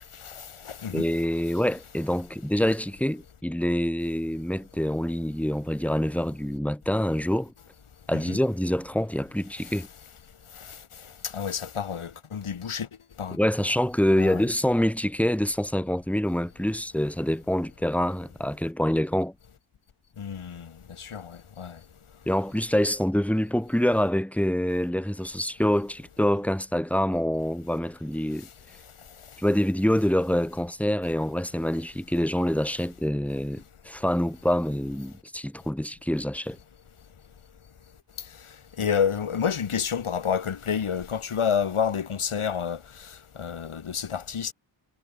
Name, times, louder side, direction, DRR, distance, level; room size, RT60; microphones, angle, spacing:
voice 1, 0.2-1.1 8.1-8.4 10.6-10.8 11.2-12.9 13.2-13.4 14.2-14.4 20.2-21.8 38.8-44.5, left 7 dB, 90° left, 2.5 m, -29 dB
voice 2, 0.9-7.5 8.1-9.9 13.3-19.3 22.3-28.5 29.4-36.6, equal, 5° left, 3.0 m, -26 dB
wide cardioid pair, 105°, 48 cm